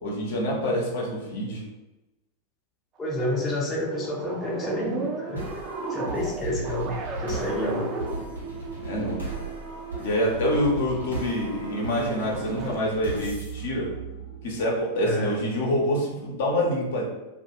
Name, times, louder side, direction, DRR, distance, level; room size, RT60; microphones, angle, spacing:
voice 1, 0.0-1.6 8.8-9.2 10.0-13.9 14.4-17.0, equal, 60° left, -2 dB, 0.7 m, -26 dB
voice 2, 3.0-5.5 5.9-6.9 7.2-7.9 15.0-15.4, left 1 dB, 20° left, -3 dB, 0.6 m, -29 dB
sound 1, 3.0-12.8, right 4 dB, 35° right, 0.4 m, -36 dB
sound 2, 5.4-14.8, right 2 dB, 90° right, 1.0 m, -37 dB
2.4 x 2.3 x 2.8 m, 1.0 s
figure-of-eight pair, 90°, 0 cm